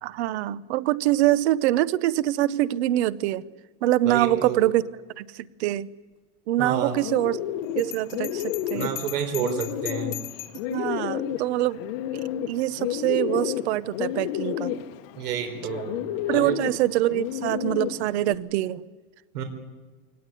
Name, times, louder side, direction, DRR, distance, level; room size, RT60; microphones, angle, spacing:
voice 1, 0.0-3.4 3.8-4.8 5.2-5.9 6.5-7.4 7.8-8.9 10.7-11.8 12.5-14.7 16.3-18.8, right 14 dB, 45° right, 20 dB, 0.8 m, -24 dB
voice 2, 4.0-4.6 6.6-7.0 8.7-10.2 15.2-16.0 16.3-16.6 19.3-19.4, right 8 dB, 75° right, 5 dB, 4.0 m, -29 dB
Bird, 6.7-18.4, left 11 dB, 40° left, 1.1 m, -31 dB
Bell, 7.8-10.7, left 17 dB, 55° left, 1.5 m, -38 dB
24.0 x 18.0 x 10.0 m, 1.3 s
supercardioid pair, 180°, 46 cm